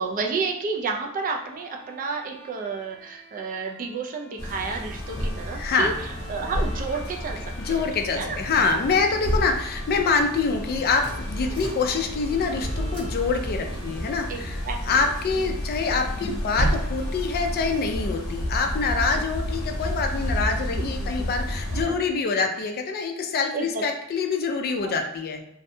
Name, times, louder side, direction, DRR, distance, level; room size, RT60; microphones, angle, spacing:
voice 1, 0.0-5.9 6.3-7.4 7.7-7.8 8.1-8.4 11.5-11.6 14.3-14.8 15.3-15.4 19.0-19.1 20.7-21.3 21.7-22.0 23.5-23.8 24.8-24.9, right 4 dB, 40° right, 2 dB, 0.3 m, -31 dB
Bowed string instrument, 1.3-18.6, equal, ahead, 0.8 m, -49 dB
sound 1, 4.4-21.8, equal, 65° left, 0.7 m, -31 dB
voice 2, 5.5-6.0 7.6-25.4, left 4 dB, 45° left, 4 dB, 0.3 m, -25 dB
sound 2, 10.5-22.0, left 1 dB, 85° right, 1.2 m, -39 dB
2.6 x 2.1 x 2.6 m, 0.77 s
head